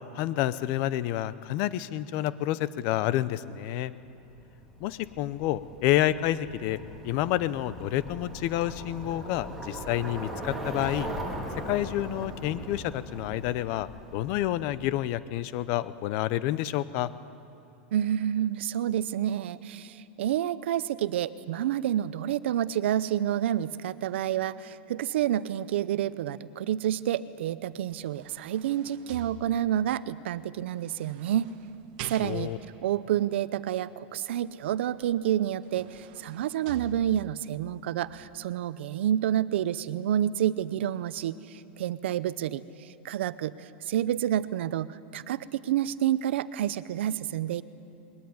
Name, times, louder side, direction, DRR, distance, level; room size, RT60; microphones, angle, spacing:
voice 1, 0.1-3.9 4.8-6.8 7.0-11.1 11.7-17.1 32.2-32.6, left 14 dB, 35° left, 16 dB, 0.6 m, -29 dB
Bicycle, 4.3-15.2, right 1 dB, ahead, 2.1 m, -40 dB
voice 2, 17.9-31.5 32.0-32.5 32.8-47.6, right 11 dB, 70° right, 16 dB, 0.8 m, -29 dB
sound 1, 27.7-29.9 30.8-32.8 35.0-35.1 35.5-37.5 38.1-38.2, right 9 dB, 45° right, 1.2 m, -46 dB
21.5 x 19.0 x 9.5 m, 2.8 s
supercardioid pair, 175°, 7 cm